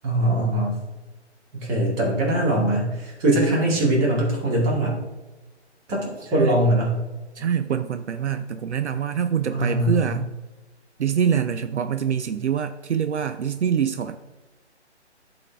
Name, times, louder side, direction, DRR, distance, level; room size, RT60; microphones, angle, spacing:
voice 1, 0.0-0.8 1.5-4.9 5.9-7.0 9.5-10.1, right 1 dB, 20° right, -3 dB, 2.1 m, -22 dB
voice 2, 7.4-10.3 11.0-14.2, right 8 dB, 75° right, 9 dB, 0.6 m, -25 dB
10.5 x 4.5 x 3.4 m, 1.2 s
figure-of-eight pair, 150°, 35 cm